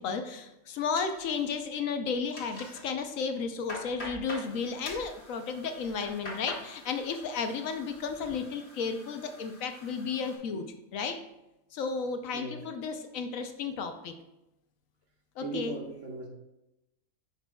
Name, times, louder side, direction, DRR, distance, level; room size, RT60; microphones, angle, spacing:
voice 1, 0.0-10.7 10.9-11.2 11.7-14.1 15.4-15.8, left 5 dB, 70° left, 7 dB, 1.0 m, -33 dB
sound 1, 1.0-1.8 2.1-2.8 3.3-4.5 4.8-5.1 5.8-6.7 7.0-7.5 7.9-8.3, left 1 dB, 50° left, 1.8 m, -42 dB
sound 2, 4.3-10.4, left 2 dB, 25° left, 2.2 m, -56 dB
voice 2, 15.4-16.3, right 3 dB, 60° right, 1 dB, 1.3 m, -38 dB
9.9 x 5.9 x 2.3 m, 0.93 s
omnidirectional pair, 1.5 m